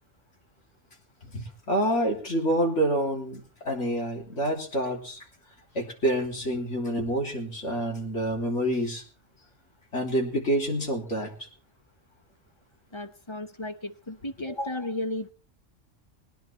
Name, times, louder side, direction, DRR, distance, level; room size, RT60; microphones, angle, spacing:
voice 1, 1.7-5.2 5.8-9.0 9.9-11.3, right 1 dB, 75° left, 0 dB, 3.5 m, -27 dB
voice 2, 12.9-15.3, left 1 dB, 25° left, 9 dB, 0.9 m, -34 dB
20.5 x 10.5 x 4.4 m, 0.38 s
omnidirectional pair, 1.2 m